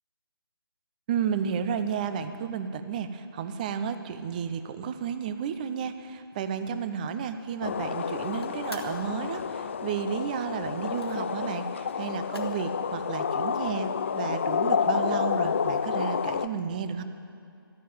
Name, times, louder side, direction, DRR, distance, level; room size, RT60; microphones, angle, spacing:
voice 1, 1.1-17.0, right 7 dB, 20° right, 10 dB, 0.6 m, -32 dB
sound 1, 6.3-12.6, left 2 dB, 90° left, 2.1 m, -51 dB
sound 2, 7.6-16.5, left 6 dB, 30° left, 0.3 m, -29 dB
14.0 x 11.0 x 9.2 m, 2.7 s
figure-of-eight pair, 150°, 13 cm